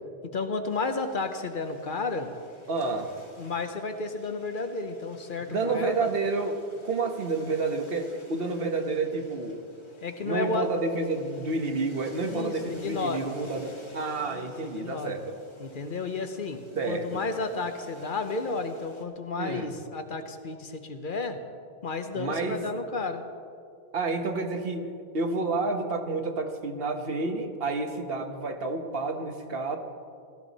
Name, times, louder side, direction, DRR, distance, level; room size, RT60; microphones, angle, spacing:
voice 1, 0.2-2.3 3.4-6.1 10.0-10.7 12.2-13.3 14.3-15.2 15.6-21.4 21.8-23.3, left 3 dB, 55° left, 7 dB, 1.0 m, -32 dB
sound 1, 0.7-19.0, left 1 dB, 30° left, 1.5 m, -53 dB
voice 2, 2.7-3.1 5.5-6.6 6.8-9.6 10.2-15.2 16.8-17.3 19.4-19.7 22.1-22.6 23.9-29.8, right 3 dB, 65° right, 5 dB, 1.3 m, -30 dB
16.5 x 13.5 x 4.1 m, 2.3 s
omnidirectional pair, 1.0 m